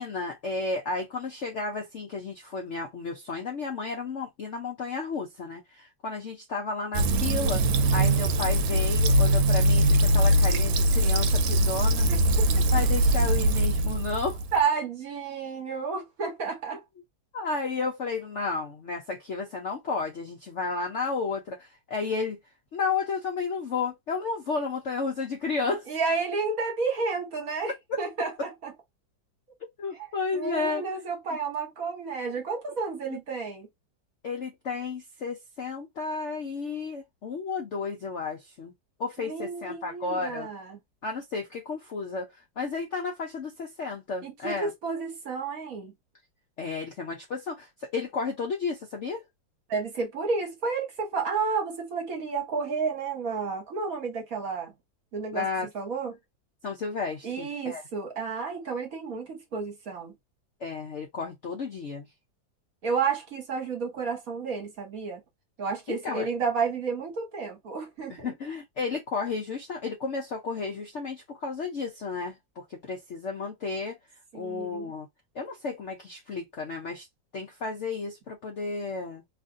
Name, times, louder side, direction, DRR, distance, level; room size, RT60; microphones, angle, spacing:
voice 1, 0.0-7.6 7.9-12.1 12.7-14.4 17.3-22.4 22.7-25.9 29.8-30.8 34.2-38.7 39.0-40.5 41.0-42.3 42.6-44.7 46.6-49.2 55.3-55.7 56.6-57.8 60.6-62.1 65.9-66.3 68.1-74.0 74.3-75.1 75.3-77.1 77.3-79.2, left 4 dB, 80° left, 0.6 m, -32 dB
Fill (with liquid), 6.9-14.6, right 1 dB, 85° right, 1.3 m, -22 dB
voice 2, 14.5-16.8 25.9-28.7 29.9-33.7 39.2-40.8 44.2-45.9 49.7-54.7 55.1-55.5 55.7-56.1 57.2-60.1 62.8-65.2 65.6-68.3 74.3-74.9, right 5 dB, 55° right, 1.3 m, -31 dB
3.0 x 2.5 x 2.5 m
omnidirectional pair, 2.1 m